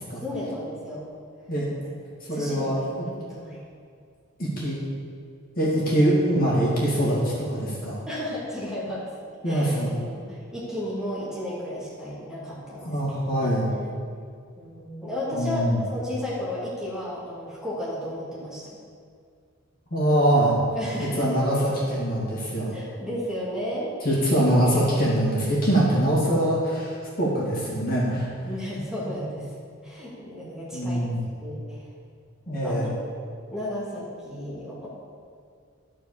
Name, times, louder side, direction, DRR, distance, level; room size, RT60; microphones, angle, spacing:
voice 1, 0.2-1.0 2.3-3.6 8.1-9.1 9.5-12.9 13.4-13.9 14.6-18.8 20.7-21.3 22.7-23.9 28.4-29.5 29.8-31.1 31.4-31.9 32.5-32.7 33.0-33.1 33.5-34.9, left 1 dB, 5° right, -9 dB, 2.5 m, -33 dB
voice 2, 2.3-2.8 4.4-4.8 5.6-8.0 9.4-9.9 12.8-13.7 15.3-15.8 19.9-20.6 21.1-22.8 24.0-28.3 30.7-31.2 32.5-32.9, right 1 dB, 40° left, -6 dB, 2.3 m, -23 dB
12.5 x 4.7 x 6.9 m, 2.2 s
head